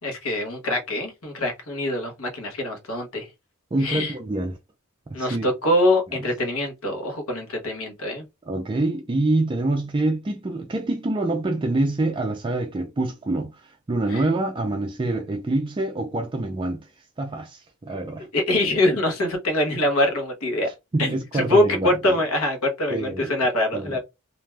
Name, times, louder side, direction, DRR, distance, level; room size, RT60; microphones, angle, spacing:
voice 1, 0.0-3.3 3.8-4.1 5.1-8.2 14.1-14.2 17.9-18.0 18.3-20.7 21.0-24.0, left 1 dB, 75° left, 1.0 m, -24 dB
voice 2, 3.7-4.6 5.1-5.5 8.5-16.9 17.2-18.3 20.6-22.2 22.9-23.4 23.7-24.0, right 2 dB, 20° right, 0.3 m, -26 dB
2.5 x 2.2 x 3.2 m
head